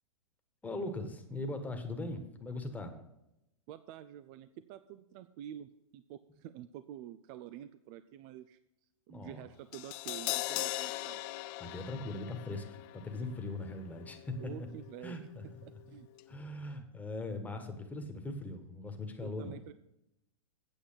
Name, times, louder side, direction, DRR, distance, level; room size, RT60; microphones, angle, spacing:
voice 1, 0.6-3.0 9.1-9.4 11.6-14.5 15.0-15.4 15.9-16.0 16.3-19.6, left 2 dB, 10° left, 5 dB, 1.5 m, -40 dB
voice 2, 3.7-8.6 9.1-11.2 14.4-16.1 16.4-16.5 16.7-16.8 19.2-19.7, right 11 dB, 40° right, 12 dB, 0.5 m, -48 dB
Crash cymbal, 9.7-15.9 16.2-16.3, left 18 dB, 35° left, 0.4 m, -41 dB
9.0 x 7.7 x 5.8 m, 0.87 s
hypercardioid pair, 120°, 18 cm